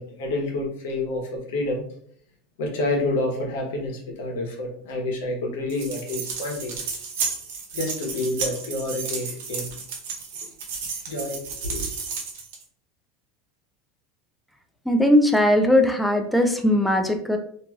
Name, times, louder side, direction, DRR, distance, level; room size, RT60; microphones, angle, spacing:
voice 1, 0.0-1.8 2.6-6.8 7.7-9.7 11.1-11.9, left 2 dB, 85° left, 1 dB, 0.9 m, -28 dB
sound 1, 5.7-12.6, right 5 dB, 80° right, 0.8 m, -32 dB
voice 2, 14.9-17.4, left 1 dB, ahead, 4 dB, 0.3 m, -19 dB
3.0 x 2.5 x 2.3 m, 0.62 s
supercardioid pair, 150°, 0 cm